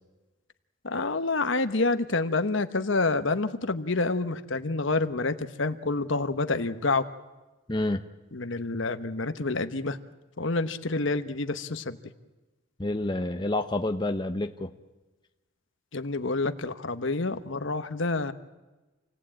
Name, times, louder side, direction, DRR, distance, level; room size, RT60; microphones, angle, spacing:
voice 1, 0.8-7.0 8.3-10.0 10.4-12.0 15.9-18.3, left 3 dB, 65° left, 10 dB, 1.1 m, -28 dB
voice 2, 7.7-8.0 12.8-14.7, left 2 dB, 20° left, 6 dB, 0.8 m, -28 dB
28.0 x 18.0 x 8.8 m, 1.1 s
head